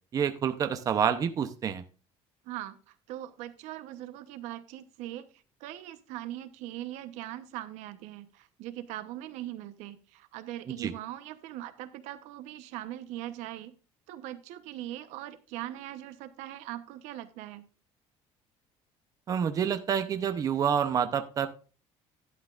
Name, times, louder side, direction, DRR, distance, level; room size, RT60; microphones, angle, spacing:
voice 1, 0.1-1.8 10.7-10.9 19.3-21.5, right 8 dB, 30° right, 9 dB, 0.7 m, -28 dB
voice 2, 2.4-5.3 5.6-13.7 14.1-17.7, right 13 dB, 85° right, 11 dB, 1.0 m, -41 dB
11.5 x 11.5 x 2.5 m, 0.36 s
cardioid pair, 165°, 12 cm